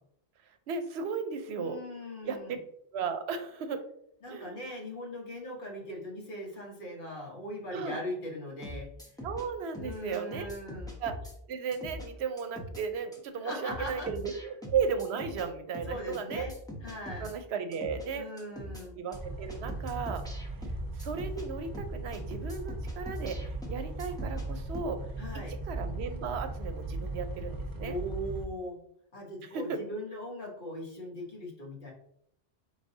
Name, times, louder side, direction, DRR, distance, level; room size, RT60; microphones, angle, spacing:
voice 1, 0.5-1.8 2.2-2.4 2.9-3.8 4.3-4.6 7.7-8.0 9.2-10.5 11.0-11.2 11.5-16.5 17.2-18.3 19.0-20.2 20.9-23.4 23.7-25.1 25.3-28.0 29.4-29.8, right 6 dB, 80° right, 8 dB, 0.8 m, -35 dB
voice 2, 1.5-2.5 4.2-8.9 9.8-11.0 13.4-14.1 15.9-16.5 16.8-17.3 18.1-19.0 25.2-25.6 27.8-28.8 29.1-31.9, equal, 55° left, -2 dB, 1.2 m, -40 dB
sound 1, 8.6-9.5 9.7-11.3 11.7-12.1 12.4-12.8 13.1-13.2 13.5-15.5 15.7-17.3 17.7-18.1 18.4-18.8 19.1-19.2 19.5-21.5 21.7-24.5 24.7-25.0, left 1 dB, 5° left, 0.7 m, -42 dB
sound 2, 19.1-28.5, right 2 dB, 35° right, 0.3 m, -38 dB
4.8 x 3.7 x 2.6 m, 0.72 s
omnidirectional pair, 1.1 m